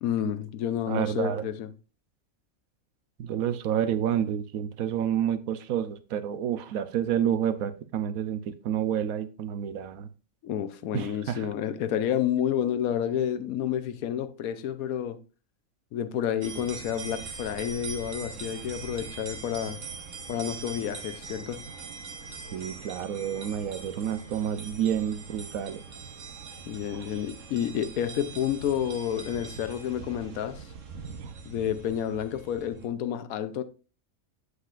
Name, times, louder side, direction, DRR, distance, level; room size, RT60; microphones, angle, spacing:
voice 1, 0.0-1.7 10.4-15.2 15.9-19.8 20.3-21.7 26.7-30.7 31.4-33.6, left 9 dB, 85° left, 1.2 m, -30 dB
voice 2, 0.9-1.4 3.2-10.1 10.9-11.5 22.5-25.8, right 9 dB, 80° right, 1.1 m, -29 dB
sound 1, 16.4-32.9, right 5 dB, 65° right, 1.4 m, -42 dB
8.2 x 7.9 x 2.5 m
omnidirectional pair, 1.5 m